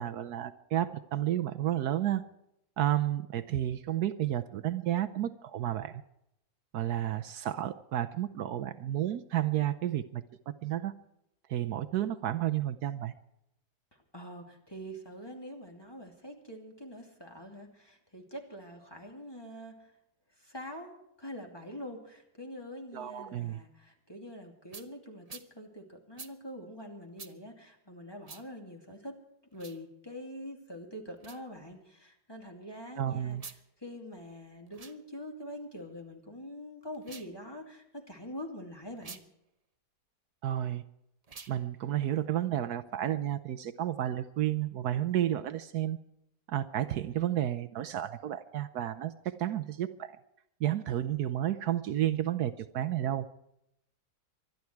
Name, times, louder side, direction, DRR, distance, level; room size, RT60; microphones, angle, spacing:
voice 1, 0.0-2.2 2.8-6.0 6.7-10.9 11.5-13.1 22.9-23.6 33.0-33.4 40.4-40.8 41.5-46.0 46.5-50.2 50.6-53.3, right 12 dB, 75° right, 10 dB, 1.2 m, -31 dB
voice 2, 13.9-19.9 20.4-29.2 29.5-33.4 33.8-39.2, equal, 15° left, 2 dB, 2.6 m, -45 dB
sound 1, 24.7-24.9 25.3-25.5 26.2-26.3 27.2-27.3 28.2-28.4 29.5-29.8 31.2-31.4 33.3-33.6 34.7-35.0 36.9-37.3 39.0-39.2 41.2-41.6, right 4 dB, 30° right, 0.8 m, -47 dB
24.5 x 11.0 x 4.6 m, 0.81 s
omnidirectional pair, 1.7 m